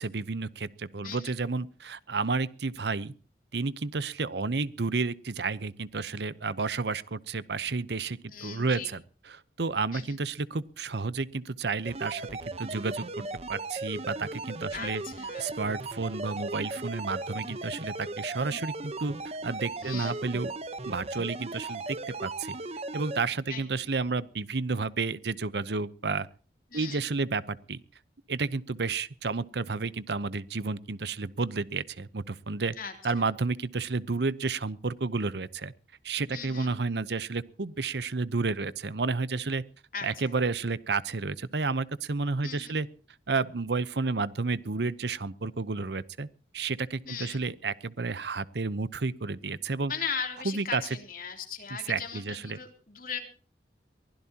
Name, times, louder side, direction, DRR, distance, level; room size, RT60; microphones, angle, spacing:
voice 1, 0.0-3.1 3.5-9.0 9.3-13.2 13.5-15.0 15.4-19.1 19.4-20.5 20.9-22.0 22.2-22.6 22.9-26.3 26.7-27.8 28.3-32.7 33.0-35.7 36.0-39.6 40.0-42.9 43.3-46.3 46.5-49.9 50.4-50.8 51.9-52.6, right 4 dB, 75° right, 17 dB, 0.8 m, -31 dB
voice 2, 1.0-1.3 8.3-8.9 9.9-10.2 14.7-15.6 19.8-20.2 23.5-23.9 26.7-27.0 32.8-32.9 36.3-36.7 39.9-40.3 42.4-42.8 47.1-47.4 49.9-53.2, left 6 dB, 50° left, 4 dB, 3.3 m, -38 dB
sound 1, 11.8-23.2, right 2 dB, 35° right, 1.0 m, -37 dB
23.5 x 16.0 x 2.9 m, 0.39 s
head